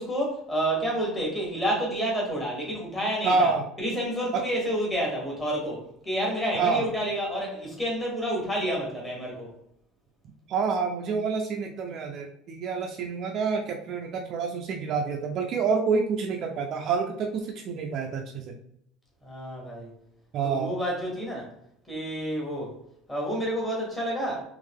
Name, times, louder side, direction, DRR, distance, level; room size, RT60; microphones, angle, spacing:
voice 1, 0.0-3.5 3.8-9.5 19.2-19.9 20.5-21.5 21.9-22.7 23.1-24.4, equal, 10° left, -3 dB, 1.2 m, -29 dB
voice 2, 3.2-3.6 4.3-4.4 6.6-6.9 10.5-18.5 20.3-20.8, right 5 dB, 35° right, 2 dB, 0.4 m, -27 dB
3.6 x 3.0 x 3.4 m, 0.74 s
cardioid pair, 180°, 0 cm